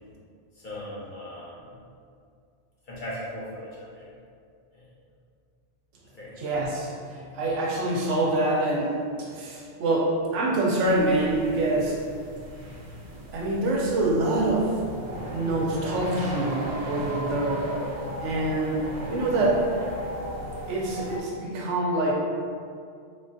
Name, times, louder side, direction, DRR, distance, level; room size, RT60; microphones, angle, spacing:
voice 1, 0.5-1.8 2.9-4.1 4.7-4.8 6.2-6.3, left 1 dB, 45° left, -8 dB, 0.9 m, -38 dB
voice 2, 6.4-12.0 13.3-14.8 15.3-17.7 18.2-18.8 19.1-19.6 20.7-22.1, right 2 dB, 85° right, -3 dB, 1.0 m, -25 dB
sound 1, 10.8-21.2, equal, 55° right, 0.5 m, -36 dB
3.6 x 2.2 x 2.6 m, 2.3 s
omnidirectional pair, 1.2 m